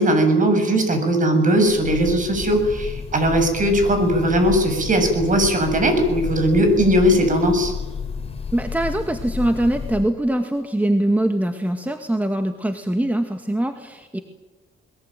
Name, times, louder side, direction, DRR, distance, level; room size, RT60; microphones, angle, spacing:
voice 1, 0.0-7.7, equal, 40° right, 7 dB, 7.5 m, -18 dB
Breathing / Bird, 1.6-10.2, left 5 dB, 30° left, 3.9 m, -31 dB
voice 2, 8.5-14.2, right 1 dB, 10° right, 6 dB, 2.0 m, -22 dB
22.5 x 22.0 x 9.2 m, 1.2 s
cardioid pair, 90°, 20 cm